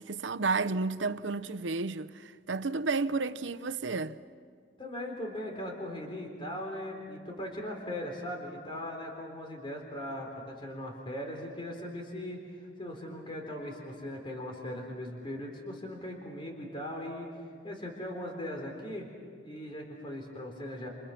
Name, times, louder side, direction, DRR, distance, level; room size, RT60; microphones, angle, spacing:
voice 1, 0.0-4.2, right 4 dB, 85° right, 0.8 m, -32 dB
voice 2, 4.8-17.3 17.6-19.1 19.4-20.9, left 1 dB, 30° left, 3.8 m, -39 dB
29.5 x 29.0 x 5.9 m
head